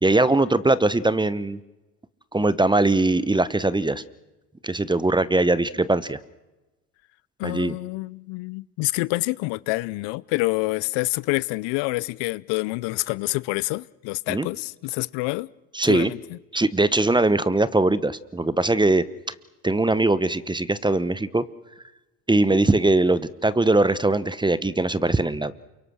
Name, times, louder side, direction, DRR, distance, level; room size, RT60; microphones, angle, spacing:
voice 1, 0.0-1.6 2.3-4.0 4.6-6.2 7.4-7.7 14.3-14.5 15.7-16.1 16.5-19.0 19.6-21.4 22.3-25.5, right 2 dB, 10° right, 1.0 m, -21 dB
voice 2, 7.4-15.5 15.8-16.4, left 23 dB, 60° left, 0.8 m, -27 dB
28.5 x 24.0 x 6.4 m
hypercardioid pair, 80°, 50 cm